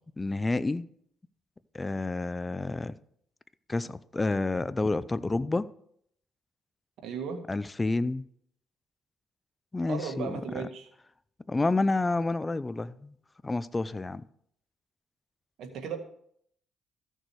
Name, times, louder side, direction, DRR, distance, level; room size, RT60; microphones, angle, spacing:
voice 1, 0.2-0.8 1.7-2.9 3.7-5.7 7.5-8.2 9.7-10.6 11.5-13.1 13.4-14.2, left 2 dB, 20° left, 0.5 m, -29 dB
voice 2, 7.0-7.4 9.9-10.9 15.6-16.0, right 6 dB, 80° right, 1.9 m, -36 dB
14.5 x 6.7 x 4.7 m
cardioid pair, 90°, 0 cm